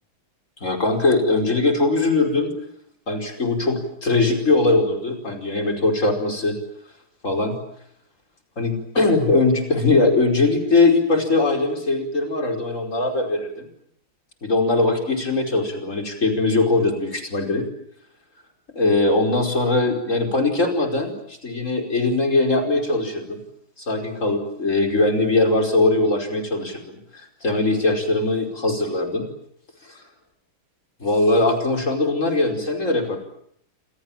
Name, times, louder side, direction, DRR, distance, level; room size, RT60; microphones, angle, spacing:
voice 1, 0.6-2.5 3.1-6.6 7.2-7.6 8.6-13.7 14.4-17.7 18.8-23.4 23.8-29.3 31.0-33.2, left 2 dB, 35° left, 4 dB, 5.4 m, -21 dB
27.5 x 27.5 x 7.4 m, 0.69 s
omnidirectional pair, 2.2 m